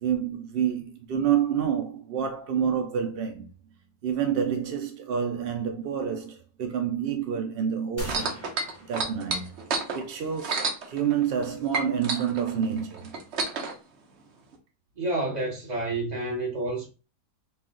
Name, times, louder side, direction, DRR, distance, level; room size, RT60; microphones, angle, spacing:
voice 1, 0.0-3.5 4.0-8.4 8.9-9.5 9.9-13.1, right 8 dB, 75° right, 0.5 m, -28 dB
sound 1, 8.0-9.9, equal, 15° left, 0.5 m, -41 dB
sound 2, 8.0-11.5 11.7-13.7 14.5-14.6, right 4 dB, 55° right, 0.9 m, -30 dB
voice 2, 15.0-16.9, right 2 dB, 30° right, 1.2 m, -29 dB
4.1 x 2.4 x 3.7 m
omnidirectional pair, 1.5 m